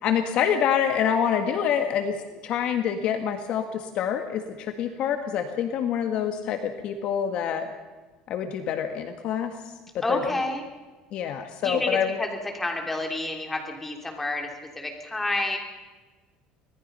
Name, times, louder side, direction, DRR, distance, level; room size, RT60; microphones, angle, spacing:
voice 1, 0.0-7.7 8.3-9.5 9.9-10.4 11.1-12.2, left 8 dB, 50° left, 6 dB, 1.6 m, -26 dB
voice 2, 10.0-10.6 11.6-12.3 12.5-14.5 14.7-15.6, left 2 dB, 10° left, 2 dB, 3.4 m, -29 dB
25.5 x 19.0 x 5.6 m, 1.3 s
cardioid pair, 155°, 2 cm